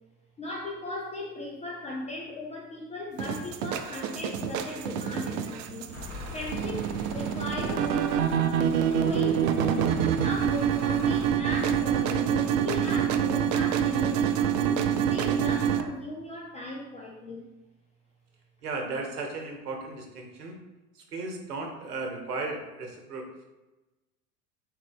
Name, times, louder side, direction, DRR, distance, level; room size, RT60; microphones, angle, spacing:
voice 1, 0.4-8.0 8.9-9.6 10.2-17.5, left 2 dB, 15° left, -2 dB, 0.4 m, -37 dB
sound 1, 3.2-15.8, right 8 dB, 55° right, 0.5 m, -26 dB
sound 2, 5.9-11.9, left 3 dB, 35° left, 1.0 m, -42 dB
voice 2, 18.6-20.6 21.1-23.4, right 3 dB, 85° right, 3 dB, 1.0 m, -35 dB
3.8 x 3.1 x 3.5 m, 1.1 s
hypercardioid pair, 85°, 45 cm